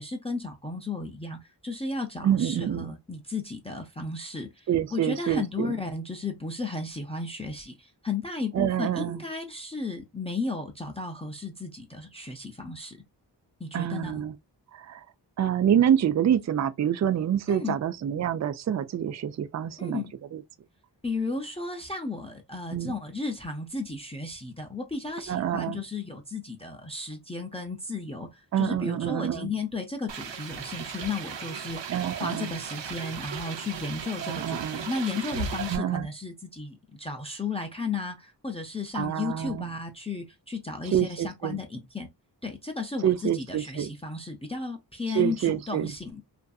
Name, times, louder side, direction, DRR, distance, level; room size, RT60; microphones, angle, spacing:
voice 1, 0.0-13.0 13.6-14.2 17.5-17.8 19.8-20.1 21.0-42.1 42.4-46.2, left 3 dB, 15° left, 0.5 m, -34 dB
voice 2, 2.2-2.9 4.7-5.7 8.5-9.2 13.7-14.3 14.7-15.0 15.4-20.0 20.3-20.4 22.7-22.9 25.3-25.8 28.5-29.5 31.9-32.5 34.2-34.9 35.7-36.1 38.9-39.7 40.9-41.6 43.0-43.9 45.1-45.9, right 10 dB, 40° right, 0.4 m, -27 dB
sound 1, 30.1-35.8, right 6 dB, 85° right, 0.6 m, -37 dB
2.6 x 2.5 x 2.3 m
cardioid pair, 50°, 43 cm